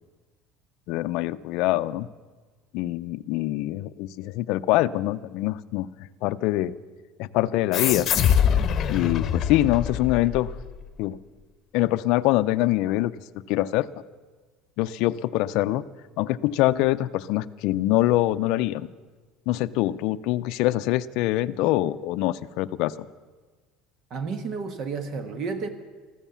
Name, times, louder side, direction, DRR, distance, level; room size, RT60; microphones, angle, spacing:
voice 1, 0.9-2.1 2.7-5.9 6.2-6.7 7.2-8.1 8.9-10.5 11.0-11.2 11.7-13.1 13.5-13.9 14.8-15.8 16.2-18.9 19.5-23.1, left 16 dB, 65° left, 12 dB, 0.5 m, -24 dB
sound 1, 7.7-10.8, left 8 dB, 40° left, 0.9 m, -24 dB
voice 2, 24.1-25.7, right 4 dB, 45° right, 9 dB, 1.2 m, -31 dB
14.5 x 13.5 x 7.0 m, 1.4 s
cardioid pair, 140°, 0 cm